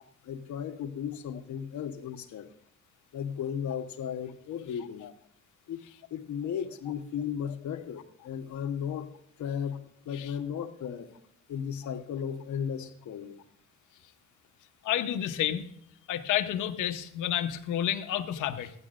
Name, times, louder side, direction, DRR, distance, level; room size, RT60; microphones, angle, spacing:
voice 1, 0.2-2.5 3.1-5.1 5.7-5.8 6.1-9.1 9.4-11.1 11.5-13.4, left 8 dB, 70° left, 6 dB, 1.2 m, -35 dB
voice 2, 14.8-15.7 16.1-18.7, left 11 dB, 85° left, 8 dB, 0.9 m, -30 dB
15.0 x 9.9 x 2.5 m, 0.72 s
cardioid pair, 90°, 30 cm